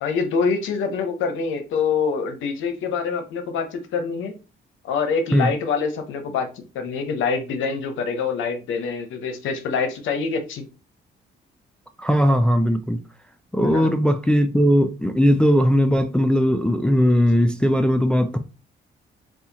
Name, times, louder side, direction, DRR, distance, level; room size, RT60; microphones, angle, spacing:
voice 1, 0.0-4.3 4.8-6.5 6.7-10.6 13.6-13.9, left 5 dB, 80° left, 0.7 m, -25 dB
voice 2, 12.0-13.0 13.5-18.4, equal, 5° left, 0.3 m, -18 dB
4.2 x 2.3 x 2.8 m
cardioid pair, 90°, 20 cm